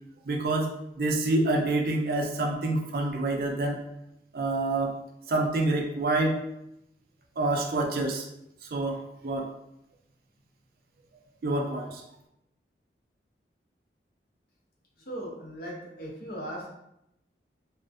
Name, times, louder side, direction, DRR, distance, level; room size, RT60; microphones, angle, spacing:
voice 1, 0.2-0.7 1.0-3.8 4.3-4.9 5.3-6.4 7.4-8.3 8.6-9.5 11.4-12.0, right 2 dB, 55° right, 1 dB, 0.4 m, -27 dB
voice 2, 15.0-16.7, equal, 55° left, -3 dB, 0.6 m, -38 dB
2.4 x 2.0 x 2.5 m, 0.83 s
head